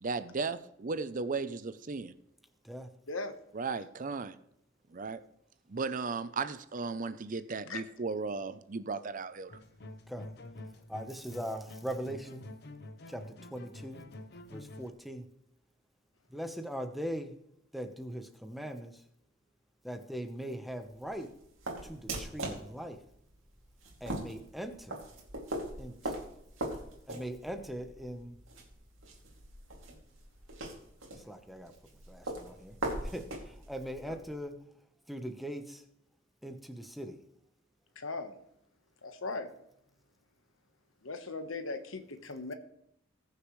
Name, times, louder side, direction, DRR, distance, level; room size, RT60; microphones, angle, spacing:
voice 1, 0.0-2.1 3.5-4.4 4.9-5.2 5.7-9.5, right 4 dB, 40° right, 13 dB, 0.6 m, -35 dB
voice 2, 3.1-3.4 7.7-7.8 34.1-34.2 37.9-38.4 39.0-39.5 41.0-42.5, left 3 dB, 85° left, 8 dB, 1.3 m, -38 dB
sound 1, 9.5-14.9, left 2 dB, 55° left, 0.8 m, -48 dB
voice 3, 10.9-12.5 13.1-13.2 13.5-14.1 14.5-15.2 16.3-17.3 17.7-18.9 19.8-21.3 21.9-23.0 24.0-25.0 25.8-26.1 27.1-28.4 31.2-31.7 32.1-32.7 33.0-34.6 35.1-35.8 36.4-37.2, equal, ahead, 6 dB, 1.0 m, -40 dB
sound 2, 20.7-34.4, right 1 dB, 80° right, 2.6 m, -41 dB
20.0 x 6.7 x 3.2 m, 0.77 s
head